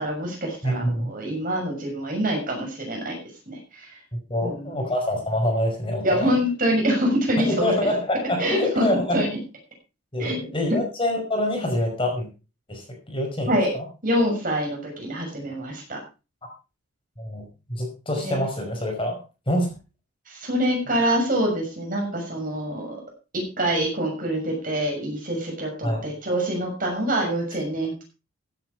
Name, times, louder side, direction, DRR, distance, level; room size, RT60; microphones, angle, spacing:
voice 1, 0.0-3.2 3.5-4.0 4.4-4.9 6.0-7.9 8.4-8.9 9.1-9.3 10.2-10.4 13.5-13.7 14.0-16.0 18.2-18.4 20.3-23.0 23.3-28.0, equal, 40° right, 1 dB, 6.6 m, -25 dB
voice 2, 0.6-1.1 4.1-6.3 7.5-9.2 10.1-12.3 12.7-13.5 13.7-13.8 17.2-17.4 17.7-19.2 19.5-19.7 25.8-26.1, left 1 dB, 25° left, 2 dB, 5.2 m, -26 dB
15.5 x 9.5 x 4.7 m, 0.32 s
head